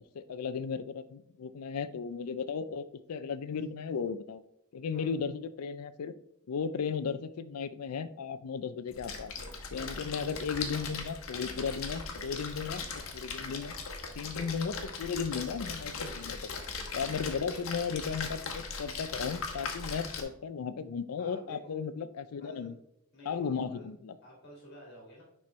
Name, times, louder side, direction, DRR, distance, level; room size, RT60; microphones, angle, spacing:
voice 1, 0.1-4.4 4.7-6.1 6.5-9.3 9.7-12.8 13.1-13.7 14.2-16.4 16.9-22.7 23.3-24.1, left 6 dB, 90° left, 13 dB, 0.4 m, -35 dB
Splash splatter, 8.9-20.2, left 4 dB, 65° left, 1.2 m, -39 dB
voice 2, 9.8-10.1 21.2-21.7 22.4-22.7 23.1-23.9 24.2-25.2, equal, 45° left, -3 dB, 2.3 m, -51 dB
10.5 x 4.3 x 3.2 m, 0.78 s
head